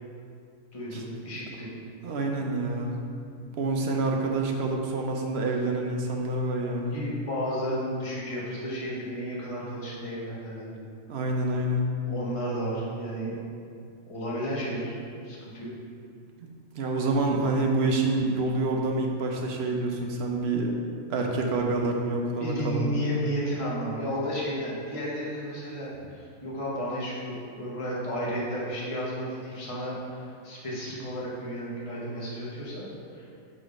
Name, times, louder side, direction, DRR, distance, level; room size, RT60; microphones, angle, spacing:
voice 1, 0.7-1.8 6.9-10.8 12.1-13.4 14.1-15.0 15.2-15.7 22.4-32.9 33.1-33.3, equal, 25° left, -6 dB, 1.2 m, -33 dB
voice 2, 2.0-2.9 3.4-7.0 11.1-11.9 16.4-16.5 16.8-20.7 21.1-22.9, right 2 dB, 55° right, 1 dB, 0.9 m, -27 dB
6.1 x 3.9 x 5.0 m, 2.4 s
omnidirectional pair, 1.4 m